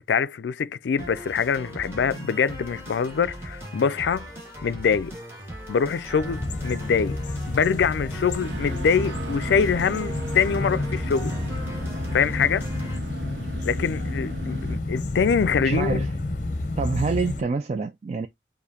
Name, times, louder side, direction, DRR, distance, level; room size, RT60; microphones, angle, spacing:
voice 1, 0.1-4.3 4.6-5.1 5.7-7.2 7.5-11.3 12.1-12.7 13.7-16.0, left 6 dB, 75° left, 0.4 m, -24 dB
sound 1, 1.0-13.0, right 1 dB, 15° right, 1.9 m, -39 dB
sound 2, 6.2-17.4, left 2 dB, 45° left, 0.6 m, -30 dB
sound 3, 8.4-14.8, right 2 dB, 85° right, 0.6 m, -38 dB
voice 2, 15.6-16.1 16.8-18.3, right 4 dB, 35° right, 0.3 m, -26 dB
6.7 x 2.6 x 2.8 m
head